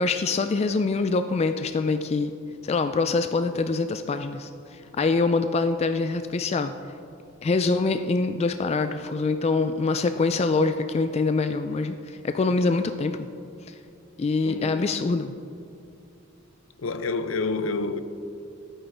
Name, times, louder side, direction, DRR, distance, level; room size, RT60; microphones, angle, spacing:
voice 1, 0.0-2.3 2.6-6.7 7.4-13.3 13.7-13.8 14.2-15.3, left 3 dB, 30° left, 0.3 m, -25 dB
voice 2, 14.4-14.9 16.8-18.0, left 3 dB, 70° left, 0.6 m, -28 dB
15.0 x 8.9 x 3.4 m
head